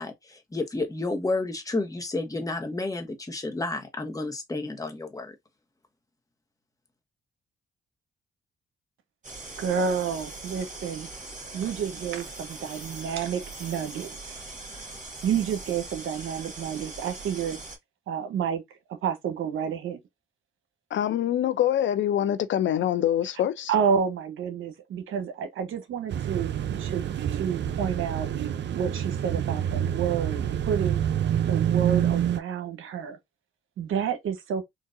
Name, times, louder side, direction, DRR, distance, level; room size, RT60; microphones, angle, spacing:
voice 1, 0.0-5.3, left 2 dB, 15° left, 1.1 m, -31 dB
sound 1, 9.2-17.8, right 2 dB, 35° right, 1.8 m, -41 dB
voice 2, 9.6-11.1 11.5-14.4 15.2-17.6 18.1-20.0 23.7-28.3 28.7-31.1 31.5-33.2 33.8-34.6, right 7 dB, 75° right, 0.9 m, -30 dB
voice 3, 20.9-23.7, left 11 dB, 65° left, 0.5 m, -25 dB
sound 2, 26.1-32.4, right 10 dB, 60° right, 0.5 m, -27 dB
3.9 x 2.5 x 2.5 m
supercardioid pair, 65°, 21 cm